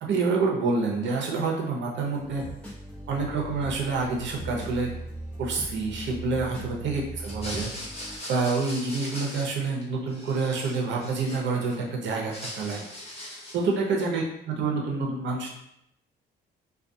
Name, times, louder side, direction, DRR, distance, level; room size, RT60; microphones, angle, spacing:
voice 1, 0.0-2.4 3.1-4.9 5.4-7.7 8.3-12.9 13.5-15.5, right 4 dB, 65° right, -1 dB, 0.7 m, -27 dB
sound 1, 1.9-8.2, right 1 dB, 5° left, 1.0 m, -39 dB
sound 2, 7.2-9.8 10.1-11.8 12.1-13.7, left 1 dB, 30° left, 0.9 m, -40 dB
2.4 x 2.3 x 2.6 m, 0.76 s
cardioid pair, 90°, 20 cm